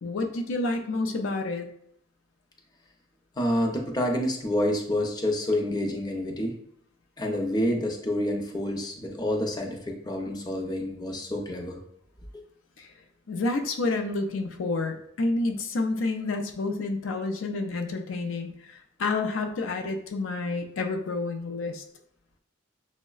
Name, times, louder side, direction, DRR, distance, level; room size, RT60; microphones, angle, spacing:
voice 1, 0.0-1.7 12.8-12.9 13.3-21.8, left 3 dB, 75° left, 5 dB, 0.4 m, -29 dB
voice 2, 3.4-6.6 7.2-11.8, left 1 dB, 20° left, 2 dB, 0.5 m, -28 dB
6.1 x 2.1 x 2.3 m, 0.71 s
head